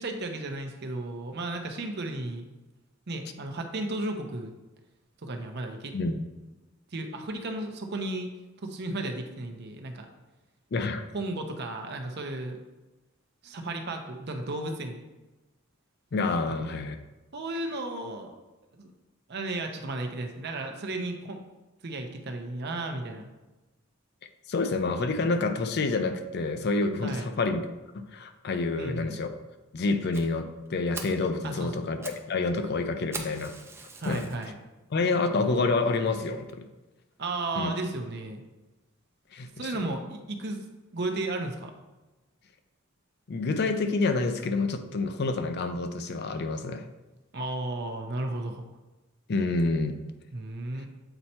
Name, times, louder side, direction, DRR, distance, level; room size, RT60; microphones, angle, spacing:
voice 1, 0.0-2.4 3.1-4.5 5.2-6.0 6.9-8.3 8.6-10.1 11.1-12.6 13.4-15.0 17.3-18.3 18.8-18.9 19.3-21.4 21.8-23.3 27.0-27.3 28.8-29.2 31.4-31.9 34.0-34.6 37.2-38.4 39.6-40.6 40.9-41.7 47.3-48.6 50.3-50.9, right 2 dB, 55° right, 4 dB, 0.7 m, -34 dB
voice 2, 10.7-11.0 16.1-17.0 24.5-27.6 27.9-29.3 29.7-33.6 34.0-34.3 34.9-36.6 37.6-37.7 39.3-39.8 43.3-46.9 49.3-50.0 50.7-50.9, left 3 dB, 55° left, 8 dB, 0.5 m, -28 dB
Fire, 30.1-30.3 30.7-30.8 30.9-31.2 31.8-32.3 32.5-32.6 33.1-34.5 35.0-35.1 35.7-35.8 36.1-36.2 36.5-36.6, right 3 dB, 10° right, 0.5 m, -41 dB
7.9 x 2.8 x 4.3 m, 1.1 s
head